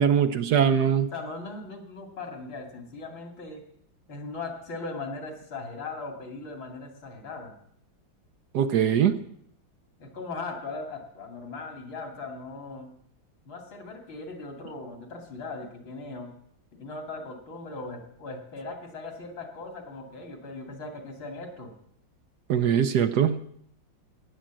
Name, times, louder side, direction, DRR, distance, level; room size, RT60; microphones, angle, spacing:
voice 1, 0.0-1.1 8.5-9.2 22.5-23.4, right 8 dB, 65° right, 11 dB, 1.1 m, -22 dB
voice 2, 1.1-3.6 4.1-7.6 10.0-12.9 13.5-16.3 16.7-21.7, left 3 dB, 75° left, 4 dB, 3.3 m, -39 dB
15.5 x 10.0 x 7.5 m, 0.70 s
omnidirectional pair, 2.1 m